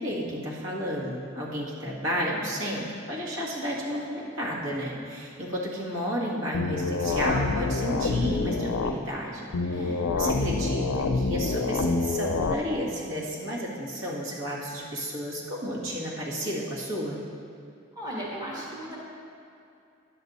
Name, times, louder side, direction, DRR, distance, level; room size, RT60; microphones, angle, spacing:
voice 1, 0.0-17.2, equal, 70° right, -5 dB, 1.8 m, -32 dB
sound 1, 6.5-8.9 9.5-12.5, left 3 dB, 85° left, 0.5 m, -27 dB
voice 2, 9.7-10.1 17.9-19.0, equal, 20° right, -6 dB, 1.4 m, -36 dB
10.0 x 6.2 x 4.1 m, 2.5 s
head